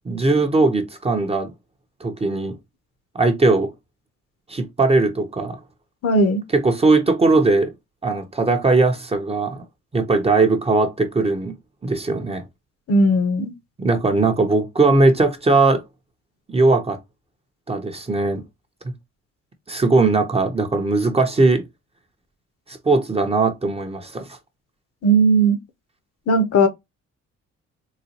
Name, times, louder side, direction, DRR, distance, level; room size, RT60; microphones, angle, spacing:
voice 1, 0.1-1.5 2.0-2.6 3.1-3.7 4.5-5.6 6.5-7.7 8.0-9.6 9.9-11.6 11.8-12.4 13.8-15.8 16.5-17.0 17.7-18.4 19.7-21.6 22.7-24.4, right 3 dB, 20° right, 0.6 m, -19 dB
voice 2, 6.0-6.4 12.9-13.5 25.0-25.6 26.3-26.7, right 1 dB, 50° left, 0.7 m, -17 dB
4.0 x 2.2 x 2.7 m
cardioid pair, 90°, 30 cm